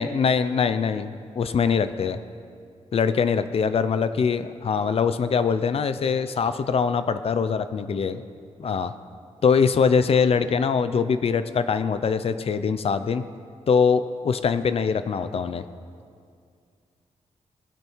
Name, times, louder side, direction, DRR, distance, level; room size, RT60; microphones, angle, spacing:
voice 1, 0.0-2.2 2.9-8.2 8.6-8.9 9.4-13.3 13.7-15.6, left 6 dB, 50° left, 11 dB, 0.6 m, -23 dB
19.0 x 15.5 x 4.6 m, 2.3 s
wide cardioid pair, 160°, 12 cm